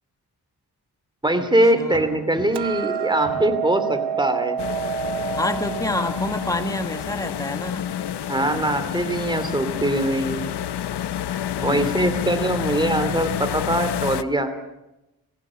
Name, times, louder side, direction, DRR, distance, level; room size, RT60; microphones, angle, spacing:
voice 1, 1.2-4.6 8.3-10.5 11.6-14.5, right 1 dB, 10° right, 8 dB, 2.6 m, -22 dB
sound 1, 1.9-2.9 3.2-3.7 4.9-5.7 8.3-9.4 10.8-11.0 11.3-11.4 13.0-14.2, left 1 dB, 40° left, 3.3 m, -43 dB
Hammer, 2.6-8.8, right 8 dB, 85° right, 1.1 m, -30 dB
sound 2, 4.6-14.2, left 10 dB, 80° left, 0.8 m, -29 dB
voice 2, 5.4-7.9 11.6-11.9, left 2 dB, 10° left, 8 dB, 1.4 m, -28 dB
19.0 x 16.0 x 8.7 m, 0.95 s
cardioid pair, 95°, 39 cm